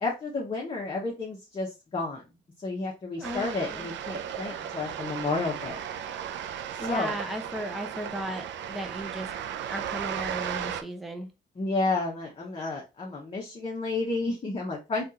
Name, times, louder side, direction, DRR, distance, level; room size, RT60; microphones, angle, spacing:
voice 1, 0.0-2.2 2.6-5.8 6.8-7.2 11.6-15.0, left 3 dB, 30° left, 0.8 m, -31 dB
voice 2, 3.2-3.9 6.8-9.3 9.7-11.3, equal, ahead, 0.6 m, -36 dB
sound 1, 3.2-10.8, right 9 dB, 70° right, 0.4 m, -35 dB
3.4 x 2.4 x 2.7 m
cardioid pair, 90°, 20 cm